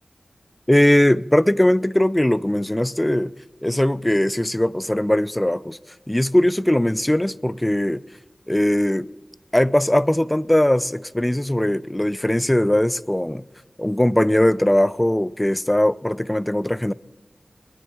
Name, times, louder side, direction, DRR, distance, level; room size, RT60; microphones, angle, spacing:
voice 1, 0.7-3.3 3.6-5.8 6.1-8.0 8.5-9.1 9.5-13.4 13.8-16.9, left 1 dB, 15° left, 0.4 m, -20 dB
21.5 x 9.5 x 4.5 m
wide cardioid pair, 55°, 0 cm